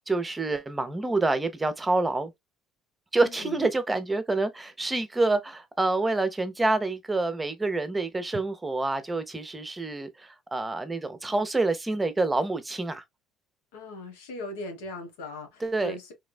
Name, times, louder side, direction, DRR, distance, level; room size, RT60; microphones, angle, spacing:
voice 1, 0.1-2.3 3.1-13.0 15.6-15.9, right 2 dB, 15° right, 0.8 m, -27 dB
voice 2, 3.2-3.7 13.7-16.1, left 1 dB, 90° left, 1.2 m, -39 dB
3.4 x 3.1 x 2.2 m
supercardioid pair, 75°, 0 cm